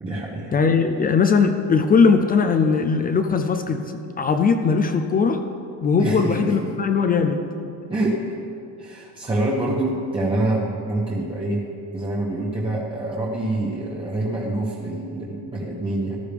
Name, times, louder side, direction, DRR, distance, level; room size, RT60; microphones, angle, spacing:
voice 1, 0.0-0.5 6.0-6.5 7.9-8.2 8.8-11.6 11.9-16.1, right 2 dB, 15° right, -4 dB, 0.9 m, -26 dB
voice 2, 0.5-3.8 4.2-5.4 5.8-7.4, left 5 dB, 25° left, 7 dB, 0.4 m, -19 dB
14.5 x 12.5 x 3.5 m, 2.6 s
cardioid pair, 160°, 40 cm